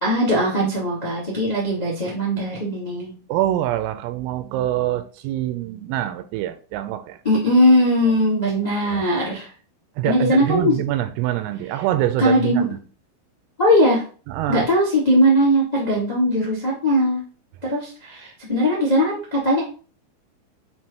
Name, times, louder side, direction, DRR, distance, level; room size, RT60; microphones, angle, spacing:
voice 1, 0.0-3.2 7.2-9.5 10.0-10.8 12.2-12.7 13.6-14.0 14.5-17.2 17.6-19.6, equal, 60° left, -4 dB, 0.4 m, -19 dB
voice 2, 3.3-7.2 8.8-9.1 10.0-12.8 14.3-14.7, right 13 dB, 85° right, 10 dB, 3.2 m, -25 dB
7.5 x 3.5 x 4.5 m, 0.39 s
omnidirectional pair, 5.8 m